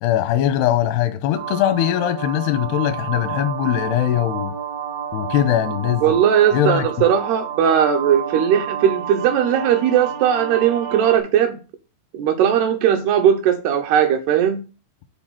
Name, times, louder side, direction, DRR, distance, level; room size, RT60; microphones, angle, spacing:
voice 1, 0.0-4.5 5.1-6.2 6.5-6.9, left 11 dB, 85° left, 2.4 m, -21 dB
sound 1, 1.3-11.2, right 8 dB, 90° right, 4.1 m, -30 dB
voice 2, 6.0-11.6 12.1-14.6, right 9 dB, 75° right, 2.6 m, -18 dB
11.5 x 4.1 x 7.3 m
omnidirectional pair, 5.5 m